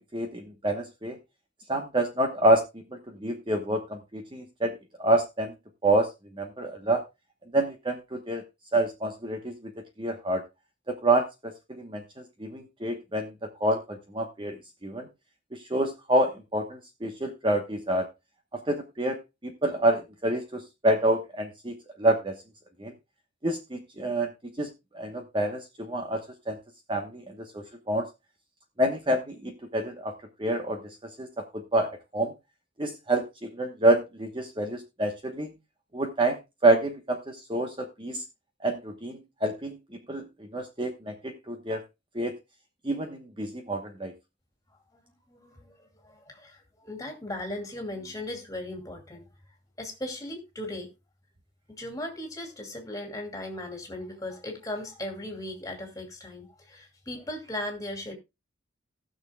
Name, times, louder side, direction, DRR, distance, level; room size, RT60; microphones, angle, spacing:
voice 1, 0.1-1.2 1.7-2.6 3.1-5.5 5.8-6.1 6.4-7.0 7.5-8.4 8.7-9.5 10.0-10.4 10.9-12.0 12.4-13.3 13.6-14.5 14.8-15.1 15.5-18.1 18.5-19.2 19.6-22.4 22.8-22.9 23.4-24.3 24.6-24.7 24.9-26.6 26.9-28.1 28.8-30.1 30.4-30.8 31.2-31.4 31.7-32.3 32.8-35.5 35.9-38.2 38.6-39.8 40.1-40.2 40.5-41.8 42.1-42.3 42.8-44.1, right 1 dB, 25° right, 1.0 m, -27 dB
voice 2, 45.0-49.2 49.8-50.9 51.7-58.1, left 1 dB, 15° left, 2.5 m, -37 dB
19.0 x 6.4 x 2.3 m
head